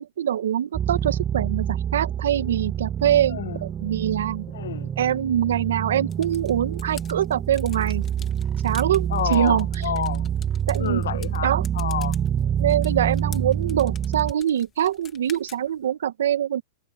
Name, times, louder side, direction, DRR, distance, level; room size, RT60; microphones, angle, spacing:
voice 1, 0.0-4.5 5.0-8.0 8.6-9.7 10.7-11.6 12.6-16.6, right 10 dB, 80° right, 1.6 m, -24 dB
sound 1, 0.7-14.3, right 9 dB, 20° right, 0.6 m, -27 dB
voice 2, 3.3-3.6 4.5-4.9 9.1-10.3 10.8-12.2, left 10 dB, 80° left, 1.2 m, -29 dB
sound 2, 6.1-15.9, left 9 dB, 25° left, 2.9 m, -47 dB
hypercardioid pair, 135°, 0 cm